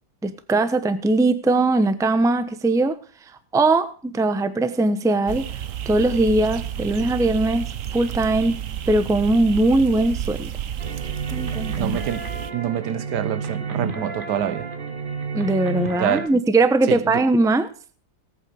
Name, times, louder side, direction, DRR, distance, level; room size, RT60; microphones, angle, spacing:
voice 1, 0.2-3.0 3.5-5.4 5.9-8.6 8.9-10.5 11.3-12.0 15.3-17.7, right 2 dB, 5° right, 0.6 m, -20 dB
sound 1, 5.3-12.5, right 10 dB, 60° right, 1.1 m, -31 dB
sound 2, 10.8-16.3, right 5 dB, 35° right, 1.5 m, -30 dB
voice 2, 11.8-14.7 16.0-16.3 16.9-17.2, right 10 dB, 80° right, 1.3 m, -26 dB
18.5 x 8.6 x 4.9 m
omnidirectional pair, 1.7 m